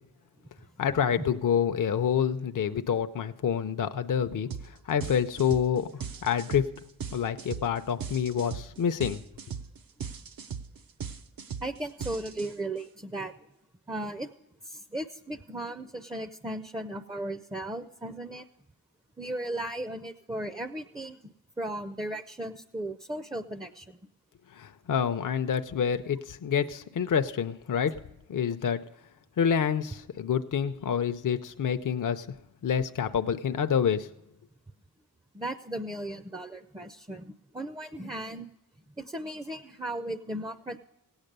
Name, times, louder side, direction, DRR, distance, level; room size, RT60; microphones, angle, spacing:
voice 1, 0.8-4.5 4.9-6.7 7.1-9.2 24.6-27.9 28.3-28.8 29.4-32.3 32.6-34.1, left 7 dB, 60° left, 8 dB, 0.6 m, -27 dB
sound 1, 4.5-4.7 5.0-12.8, right 7 dB, 70° right, 0.7 m, -38 dB
voice 2, 11.6-13.3 13.9-14.3 14.6-18.5 19.2-21.2 21.6-24.0 35.3-38.5 39.0-40.8, right 1 dB, 10° right, 10 dB, 0.5 m, -36 dB
16.5 x 8.9 x 6.7 m, 0.87 s
wide cardioid pair, 70°, 36 cm